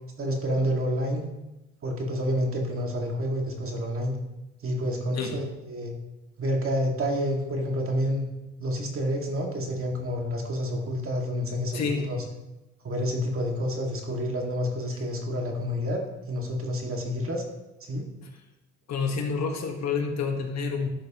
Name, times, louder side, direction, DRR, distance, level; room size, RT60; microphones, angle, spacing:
voice 1, 0.2-1.2 1.8-4.2 4.6-5.9 6.4-8.3 8.6-12.2 12.8-16.0 16.3-17.4 17.8-18.0, equal, 45° right, 0 dB, 2.0 m, -29 dB
voice 2, 11.7-12.1 18.2-18.3 18.9-20.9, left 5 dB, 60° left, 3 dB, 1.5 m, -28 dB
11.5 x 6.4 x 3.0 m, 1.0 s
cardioid pair, 90°, 30 cm